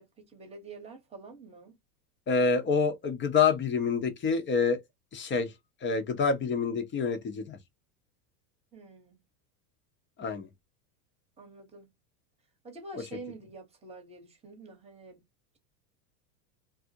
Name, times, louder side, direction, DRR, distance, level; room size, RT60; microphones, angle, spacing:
voice 1, 0.0-1.7 8.7-9.2 11.4-11.9 12.6-15.2, right 2 dB, 10° right, 1.0 m, -47 dB
voice 2, 2.3-4.8 5.1-5.5 5.8-7.6 10.2-10.5 12.9-13.0, left 5 dB, 25° left, 0.6 m, -27 dB
2.4 x 2.0 x 2.7 m
hypercardioid pair, 105°, 49 cm